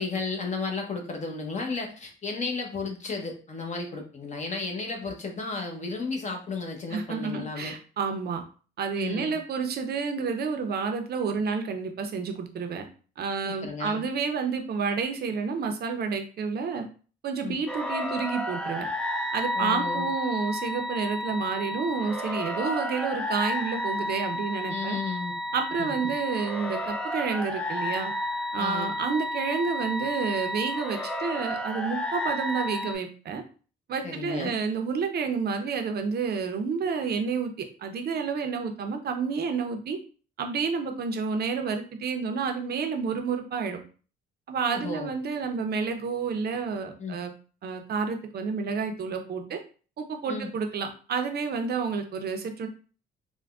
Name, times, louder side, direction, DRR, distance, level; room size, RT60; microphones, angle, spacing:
voice 1, 0.0-7.7 9.0-9.4 13.4-14.0 17.4-17.6 19.5-20.1 24.7-25.3 25.8-26.1 28.6-28.9 34.0-34.6 44.7-45.1 47.0-47.2 50.3-50.5, left 4 dB, 35° left, 2 dB, 0.9 m, -33 dB
voice 2, 6.9-8.4 8.8-12.9 13.2-16.8 17.2-18.9 19.3-25.0 25.5-28.1 28.5-33.4 33.9-37.5 37.8-40.0 40.4-43.8 44.5-47.3 47.6-49.6 50.0-52.7, right 5 dB, 55° right, 5 dB, 0.6 m, -30 dB
sound 1, 17.7-32.9, left 1 dB, 5° left, 0.4 m, -31 dB
3.4 x 2.2 x 2.3 m, 0.39 s
cardioid pair, 90°, 20 cm